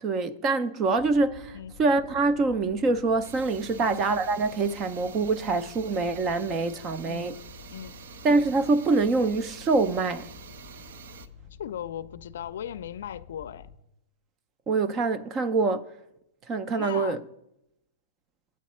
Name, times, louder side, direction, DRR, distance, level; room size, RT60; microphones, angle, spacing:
voice 1, 0.0-7.3 8.2-10.3 14.7-15.9 16.5-17.2, right 3 dB, 20° right, 0.4 m, -25 dB
Mechanical fan, 1.0-13.7, left 7 dB, 25° left, 0.6 m, -49 dB
sound 1, 3.2-11.3, right 7 dB, 70° right, 0.6 m, -47 dB
voice 2, 7.0-7.4 7.7-8.0 11.6-13.7 16.7-17.2, left 9 dB, 70° left, 0.4 m, -38 dB
9.1 x 8.4 x 4.3 m
hypercardioid pair, 160°, 0 cm